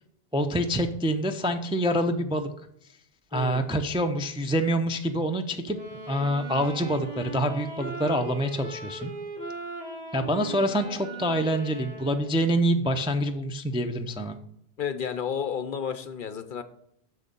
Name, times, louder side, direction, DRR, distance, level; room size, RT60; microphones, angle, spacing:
voice 1, 0.3-2.5 3.3-9.1 10.1-14.4, equal, 10° right, 6 dB, 0.3 m, -26 dB
voice 2, 3.3-3.7 14.8-16.6, left 7 dB, 55° left, 10 dB, 0.8 m, -31 dB
sound 1, 5.7-12.5, right 2 dB, 40° right, 2.0 m, -39 dB
6.8 x 6.3 x 5.2 m, 0.74 s
omnidirectional pair, 1.1 m